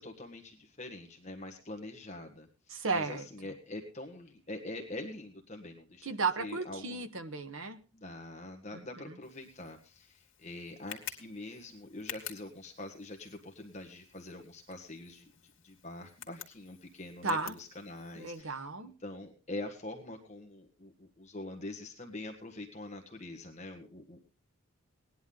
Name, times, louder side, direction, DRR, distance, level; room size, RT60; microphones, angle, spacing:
voice 1, 0.0-6.1 6.4-7.0 7.9-15.3 15.6-24.2, left 2 dB, 30° left, 3 dB, 1.5 m, -44 dB
voice 2, 2.7-3.3 6.0-7.8 8.7-8.8 17.2-17.5 18.2-18.9, right 4 dB, 65° right, 9 dB, 1.3 m, -34 dB
Tick, 9.2-18.4, left 10 dB, 65° left, 2.2 m, -50 dB
18.5 x 10.5 x 3.9 m, 0.35 s
head